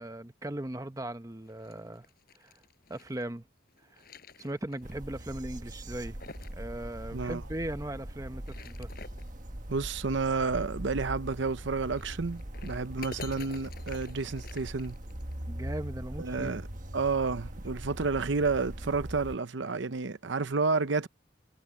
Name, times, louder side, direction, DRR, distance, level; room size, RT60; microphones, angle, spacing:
voice 1, 0.0-2.0 2.4-2.5 2.9-3.4 3.9-4.0 4.4-6.2 6.5-8.9 15.5-16.6, right 1 dB, 15° right, 0.8 m, -38 dB
sound 1, 1.4-3.2 3.7-4.9 5.2-5.3 5.8-6.6 6.9-7.0 8.2-9.3 11.2-15.3, left 4 dB, 50° left, 4.8 m, -49 dB
sound 2, 4.8-19.4, right 1 dB, 40° right, 1.6 m, -41 dB
voice 2, 9.7-15.0 16.2-16.7 16.9-21.1, right 4 dB, 75° right, 0.7 m, -30 dB
head